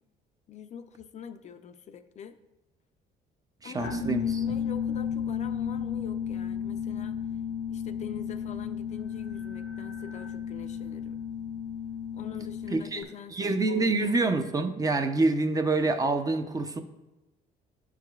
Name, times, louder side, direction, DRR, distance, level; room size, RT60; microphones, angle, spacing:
voice 1, 0.5-2.3 3.6-7.2 7.7-11.2 12.1-14.2, left 7 dB, 45° left, 9 dB, 0.4 m, -44 dB
voice 2, 3.6-4.4 12.7-16.8, right 3 dB, 20° right, 8 dB, 0.5 m, -27 dB
sound 1, 3.8-13.0, left 7 dB, 90° left, 0.7 m, -33 dB
10.0 x 4.8 x 2.3 m, 1.0 s
cardioid pair, 110°, 17 cm